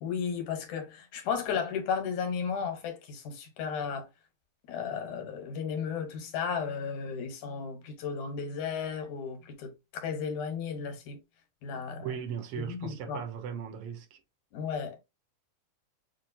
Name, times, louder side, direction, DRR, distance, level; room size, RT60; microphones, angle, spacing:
voice 1, 0.0-4.1 4.7-9.7 10.0-11.2 11.6-12.1 12.6-13.2 14.5-15.0, left 6 dB, 85° left, 2.7 m, -34 dB
voice 2, 12.0-14.2, right 7 dB, 70° right, 1.5 m, -37 dB
7.1 x 2.5 x 2.7 m
omnidirectional pair, 3.3 m